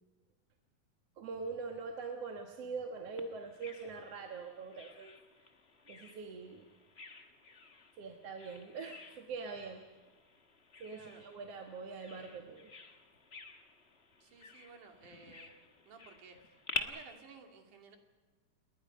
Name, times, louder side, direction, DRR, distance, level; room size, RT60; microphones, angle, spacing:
voice 1, 1.2-5.5 5.9-6.7 8.0-9.8 10.8-13.0, right 4 dB, 60° right, 3 dB, 2.4 m, -43 dB
Bird vocalization bird call bird song, 3.2-16.8, left 3 dB, 45° left, 0.8 m, -49 dB
voice 2, 10.9-11.3 14.2-15.5 15.9-18.0, right 5 dB, 85° right, 3 dB, 4.0 m, -56 dB
29.5 x 21.0 x 5.3 m, 1.4 s
omnidirectional pair, 3.5 m